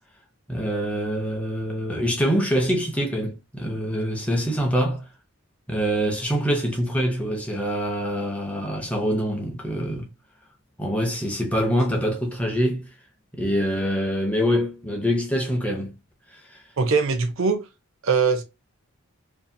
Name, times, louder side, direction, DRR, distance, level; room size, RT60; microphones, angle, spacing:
voice 1, 0.5-5.0 5.7-10.1 10.8-12.9 13.3-16.0 16.3-16.6, equal, 5° left, 0.5 m, -25 dB
voice 2, 16.8-17.6 18.0-18.4, right 5 dB, 65° right, 0.5 m, -21 dB
2.7 x 2.4 x 2.5 m
head